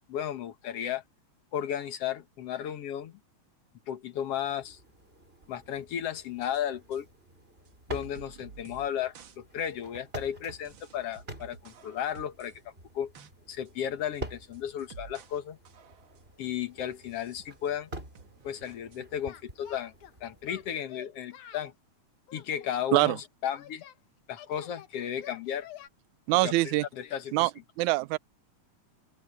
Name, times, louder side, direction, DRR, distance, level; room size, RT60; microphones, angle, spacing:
voice 1, 0.1-1.0 1.5-3.2 3.9-4.8 5.5-7.1 7.9-12.6 12.9-13.1 13.5-15.6 16.4-17.9 18.4-19.9 20.2-21.7 22.3-23.8 24.3-25.7 26.4-27.3, left 9 dB, 60° left, 2.1 m, -34 dB
sound 1, 4.2-20.8, right 1 dB, 20° right, 5.9 m, -48 dB
sound 2, 6.2-6.6 6.9-7.0 7.7-7.8 8.0-8.9 9.1-9.4 9.7-9.8 10.2-10.3 10.7-12.6 12.9-13.3 13.7-13.8 14.2-15.4 15.7-16.3 16.9-17.8 18.2-19.0, right 6 dB, 50° right, 1.7 m, -52 dB
Singing, 19.2-20.1 20.5-21.7 22.3-24.0 24.4-25.9, left 10 dB, 85° left, 3.0 m, -49 dB
voice 2, 26.3-26.9 27.3-27.5 27.8-28.2, right 19 dB, 85° right, 1.9 m, -24 dB
open air
omnidirectional pair, 3.3 m